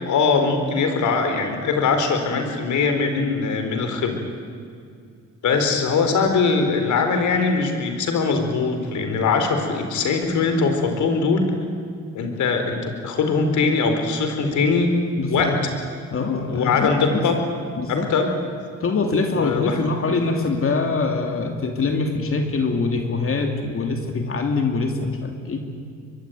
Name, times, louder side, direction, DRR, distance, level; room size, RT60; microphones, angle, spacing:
voice 1, 0.0-4.2 5.4-11.5 12.1-14.9 15.3-15.5 16.5-17.4 17.9-18.3 19.4-19.7, left 4 dB, 75° left, 6 dB, 4.3 m, -21 dB
voice 2, 15.2-15.6 16.1-17.3 17.8-18.1 18.8-25.6, left 3 dB, 45° left, 4 dB, 2.7 m, -24 dB
24.0 x 23.0 x 9.4 m, 2.2 s
cardioid pair, 90°, 30 cm